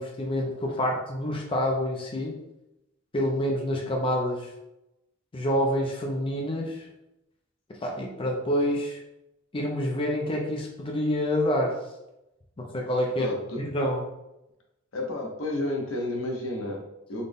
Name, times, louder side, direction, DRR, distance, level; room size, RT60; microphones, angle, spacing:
voice 1, 0.0-2.4 3.1-4.5 5.3-6.8 7.8-9.0 9.5-11.8 12.6-13.3 13.7-14.0, equal, 25° left, 0 dB, 0.5 m, -27 dB
voice 2, 13.2-13.7 14.9-17.3, left 1 dB, 80° left, 0 dB, 0.8 m, -31 dB
4.0 x 2.1 x 3.4 m, 0.90 s
head